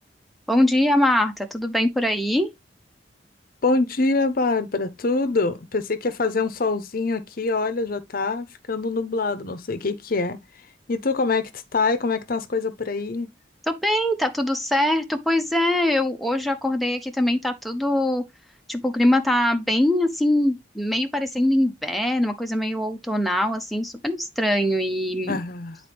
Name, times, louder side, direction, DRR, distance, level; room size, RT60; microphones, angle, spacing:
voice 1, 0.5-2.5 13.7-18.2 18.7-25.4, left 1 dB, ahead, 0.7 m, -22 dB
voice 2, 3.6-10.4 10.9-13.3 25.3-25.8, left 3 dB, 50° left, 0.7 m, -25 dB
9.2 x 4.1 x 3.4 m
head